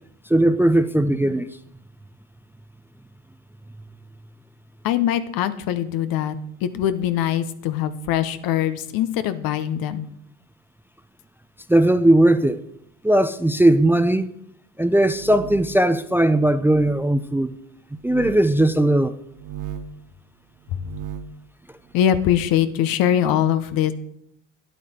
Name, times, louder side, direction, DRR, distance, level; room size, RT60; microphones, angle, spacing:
voice 1, 0.3-1.5 11.7-12.6 13.0-14.3 14.8-17.6 18.0-19.1, right 1 dB, 5° right, 0.4 m, -18 dB
voice 2, 4.8-6.4 6.6-10.1 21.9-23.9, left 10 dB, 65° left, 0.9 m, -22 dB
sound 1, 14.9-15.9 16.6-17.0 18.0-18.4 19.3-20.0 20.7-21.4, right 9 dB, 55° right, 1.0 m, -36 dB
10.0 x 8.4 x 4.3 m
hypercardioid pair, 70°, 37 cm